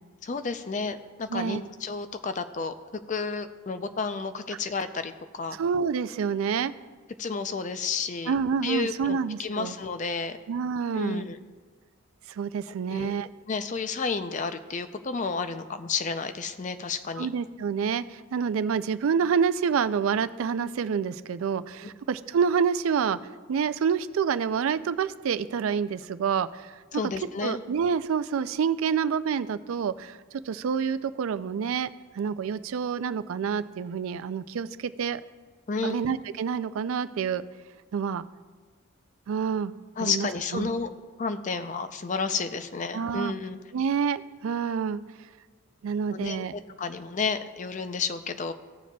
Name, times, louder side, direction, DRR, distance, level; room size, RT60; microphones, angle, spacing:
voice 1, 0.2-2.7 3.1-5.6 7.2-8.3 8.6-10.4 10.9-11.4 12.9-13.1 13.5-17.3 21.8-21.9 26.9-27.6 35.7-36.0 40.0-40.9 41.2-43.6 46.1-48.5, left 4 dB, 35° left, 10 dB, 0.4 m, -31 dB
voice 2, 5.5-6.7 8.3-9.8 10.5-11.3 12.3-13.3 17.2-23.2 23.5-26.8 27.4-30.2 30.4-35.2 35.8-37.4 37.9-38.2 39.3-39.7 40.0-40.7 42.9-43.3 43.7-45.0 45.8-46.5, right 6 dB, 85° right, 14 dB, 0.4 m, -28 dB
16.5 x 7.1 x 2.3 m, 1.5 s
head